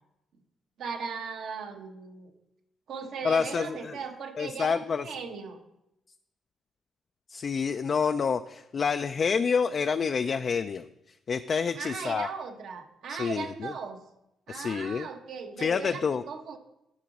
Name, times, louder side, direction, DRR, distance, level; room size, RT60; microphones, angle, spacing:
voice 1, 0.8-2.3 2.9-5.6 11.7-14.0 14.5-16.6, right 5 dB, 75° right, 4 dB, 1.1 m, -38 dB
voice 2, 3.2-3.9 4.4-5.1 7.3-10.9 11.3-12.3 13.1-13.7 14.5-15.1 15.6-16.2, left 6 dB, 45° left, 9 dB, 0.3 m, -28 dB
11.5 x 3.9 x 6.0 m, 0.87 s
cardioid pair, 90°, 0 cm